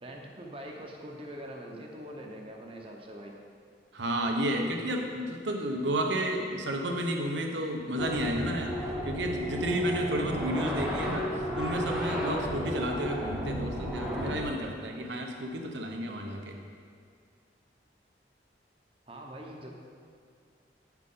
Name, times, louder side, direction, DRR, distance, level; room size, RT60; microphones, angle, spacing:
voice 1, 0.0-3.3 19.1-19.7, equal, 30° right, 0 dB, 0.8 m, -43 dB
voice 2, 3.9-8.8 9.0-16.6, right 1 dB, 85° right, 2 dB, 0.9 m, -32 dB
sound 1, 8.0-14.4, equal, ahead, 0.9 m, -33 dB
8.8 x 5.9 x 3.8 m, 2.2 s
head